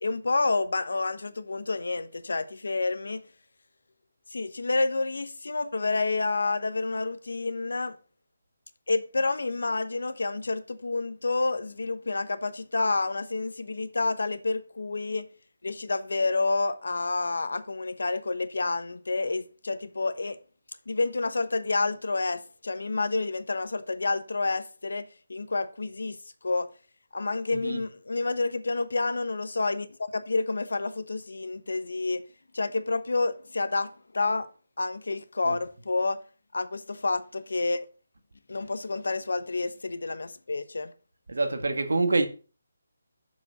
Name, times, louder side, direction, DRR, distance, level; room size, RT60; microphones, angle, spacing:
voice 1, 0.0-3.2 4.3-8.0 8.9-15.3 15.6-20.4 20.9-26.2 26.4-26.7 27.1-32.2 32.5-34.5 34.8-36.2 36.5-37.8 38.5-40.9, left 3 dB, 80° left, 1.1 m, -29 dB
voice 2, 41.3-42.3, right 3 dB, 90° right, 1.7 m, -26 dB
6.9 x 5.4 x 6.2 m
hypercardioid pair, 165°, 0 cm